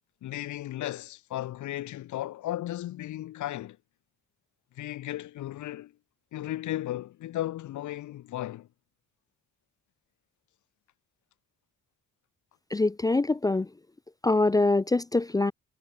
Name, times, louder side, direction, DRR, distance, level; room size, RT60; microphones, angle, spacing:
voice 1, 0.2-3.8 4.8-5.9 6.3-8.7, left 14 dB, 75° left, 1.2 m, -35 dB
voice 2, 12.7-13.7 14.2-15.5, left 2 dB, 15° left, 0.4 m, -24 dB
cardioid pair, 90°, 30 cm